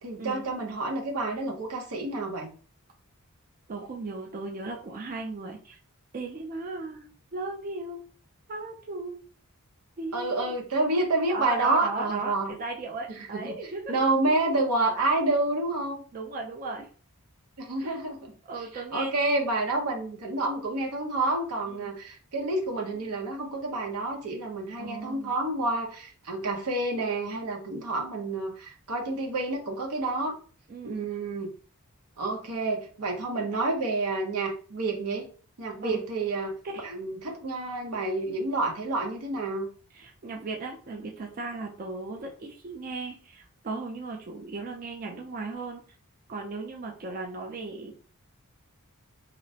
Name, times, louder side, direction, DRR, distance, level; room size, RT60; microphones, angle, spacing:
voice 1, 0.0-2.5 10.1-12.5 13.1-13.5 13.9-16.1 17.6-30.3 30.8-31.5 32.2-35.3 35.6-36.5 36.8-39.7, right 2 dB, 85° right, 0 dB, 0.8 m, -29 dB
voice 2, 3.7-5.8 6.1-8.0 8.5-9.2 10.0-10.6 11.3-14.0 16.1-16.9 17.8-17.9 18.5-19.1 21.7-21.9 24.8-25.3 30.7-31.1 35.8-35.9 36.7-36.9 39.9-45.8 46.3-47.9, right 3 dB, 40° right, 1 dB, 0.4 m, -36 dB
2.9 x 2.1 x 2.7 m, 0.40 s
head